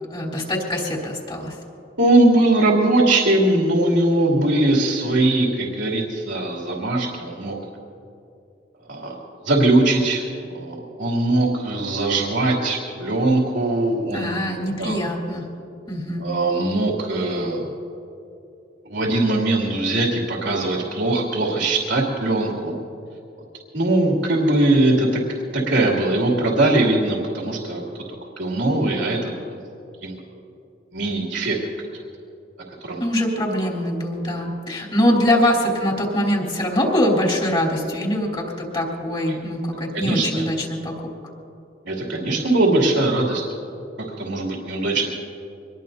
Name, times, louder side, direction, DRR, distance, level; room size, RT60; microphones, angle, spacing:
voice 1, 0.1-1.6 14.1-15.5 15.9-16.3 33.0-41.1 42.1-42.2, left 1 dB, 30° left, -2 dB, 3.5 m, -23 dB
voice 2, 2.0-7.5 8.9-9.2 9.4-15.0 16.2-17.7 18.8-22.7 23.7-25.2 25.5-27.8 28.4-29.6 30.0-30.2 30.9-31.7 32.8-33.0 39.3-39.4 39.9-40.4 41.9-43.4 44.2-45.1, right 2 dB, 85° right, -3 dB, 2.8 m, -21 dB
25.0 x 20.5 x 2.7 m, 2.7 s
head